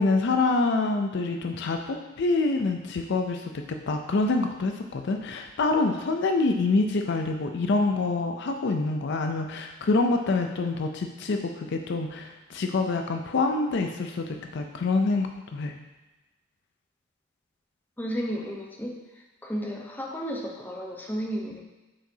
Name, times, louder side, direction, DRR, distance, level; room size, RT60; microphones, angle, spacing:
voice 1, 0.0-3.5 3.9-15.7, left 3 dB, 55° left, 4 dB, 0.5 m, -26 dB
voice 2, 18.0-19.0 19.4-21.6, equal, 10° left, -1 dB, 0.6 m, -33 dB
7.4 x 4.8 x 2.7 m, 1.1 s
head